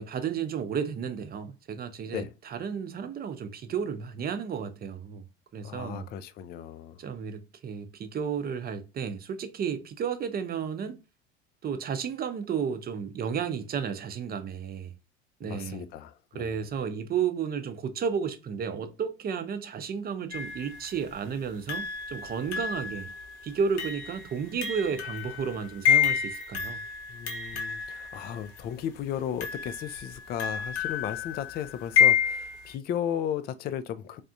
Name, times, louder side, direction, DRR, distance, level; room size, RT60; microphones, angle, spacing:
voice 1, 0.0-5.2 5.5-6.1 7.0-10.9 11.6-14.9 15.4-15.8 16.3-23.1 23.4-26.8, right 7 dB, 30° right, 0.6 m, -32 dB
voice 2, 5.6-7.0 15.4-16.6 27.1-34.2, left 9 dB, 30° left, 0.4 m, -35 dB
sound 1, 20.3-20.9 21.7-28.6 29.4-32.7, left 8 dB, 85° left, 0.8 m, -29 dB
3.4 x 2.4 x 2.7 m
hypercardioid pair, 75°, 33 cm